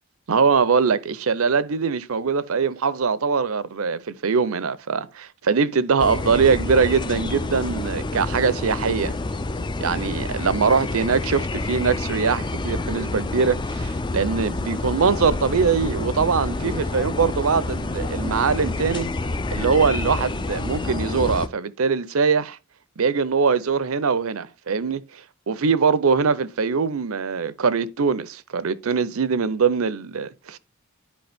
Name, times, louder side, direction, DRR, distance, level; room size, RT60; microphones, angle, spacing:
voice 1, 0.3-9.1 9.8-19.1 19.5-22.6 23.0-25.2 25.5-30.6, right 5 dB, 75° right, 0.6 m, -22 dB
sound 1, 6.0-21.5, left 2 dB, 20° left, 0.4 m, -28 dB
10.5 x 4.6 x 3.5 m
head